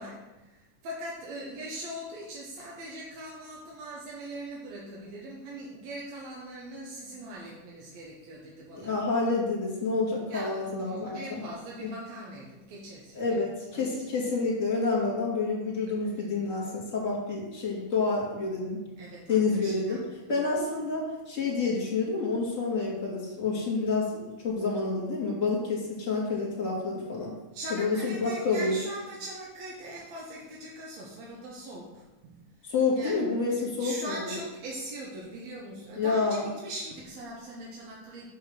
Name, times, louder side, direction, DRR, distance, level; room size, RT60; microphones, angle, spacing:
voice 1, 0.0-8.9 10.3-13.4 13.7-13.8 19.0-20.0 27.5-32.4 32.9-33.2 33.6-38.3, right 1 dB, 65° right, -3 dB, 2.1 m, -41 dB
voice 2, 8.7-11.4 11.8-11.9 13.1-18.8 19.3-20.0 20.3-27.3 27.7-28.8 32.6-34.4 36.0-36.5, left 4 dB, 25° left, -4 dB, 2.4 m, -28 dB
6.6 x 4.7 x 6.2 m, 1.0 s
omnidirectional pair, 3.7 m